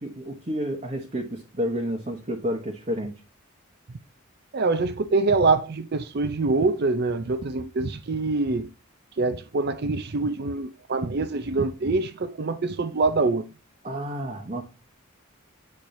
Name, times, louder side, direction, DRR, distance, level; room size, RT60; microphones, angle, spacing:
voice 1, 0.0-3.1 13.8-14.6, equal, 30° right, 1.0 m, -30 dB
voice 2, 4.5-8.7 9.1-13.4, right 3 dB, 50° right, 0.5 m, -25 dB
8.4 x 4.5 x 2.6 m
head